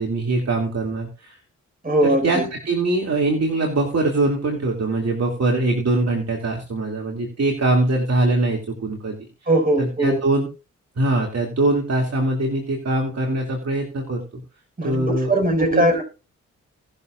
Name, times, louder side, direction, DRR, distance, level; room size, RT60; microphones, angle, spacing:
voice 1, 0.0-1.4 2.0-9.3 9.8-10.5 11.0-14.4 14.8-15.8, right 2 dB, 50° right, 0 dB, 2.9 m, -22 dB
voice 2, 1.8-2.5 9.5-10.2 14.8-16.0, right 1 dB, 25° right, 3 dB, 6.0 m, -20 dB
19.5 x 6.9 x 2.6 m, 0.33 s
supercardioid pair, 50°, 32 cm